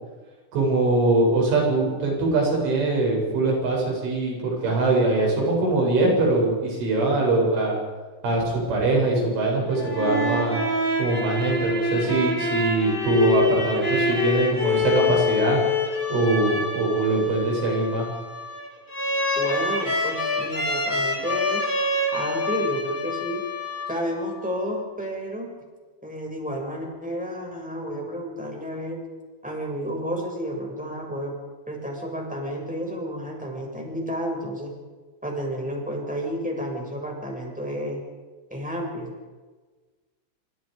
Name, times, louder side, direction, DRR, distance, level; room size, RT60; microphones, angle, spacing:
voice 1, 0.5-7.8 8.2-10.6 11.0-15.6 16.1-18.1, right 2 dB, 75° right, -1 dB, 10.0 m, -22 dB
sound 1, 9.7-24.3, left 2 dB, 15° left, 1.7 m, -26 dB
voice 2, 19.3-21.7 22.1-23.4 23.9-25.5 26.0-29.0 29.4-31.3 31.7-34.7 35.2-38.0 38.5-39.1, equal, ahead, 0 dB, 6.2 m, -31 dB
27.0 x 27.0 x 5.2 m, 1.3 s
omnidirectional pair, 5.6 m